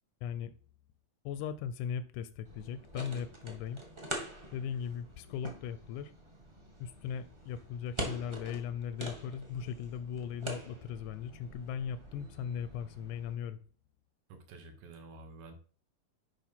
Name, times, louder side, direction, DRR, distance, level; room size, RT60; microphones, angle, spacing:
voice 1, 0.2-0.5 1.3-3.8 4.5-6.1 6.8-13.6, left 8 dB, 85° left, 2.0 m, -38 dB
sound 1, 2.4-13.4, right 1 dB, 25° right, 0.6 m, -45 dB
voice 2, 14.3-15.5, right 3 dB, 75° right, 2.7 m, -50 dB
10.0 x 3.4 x 5.8 m
omnidirectional pair, 3.4 m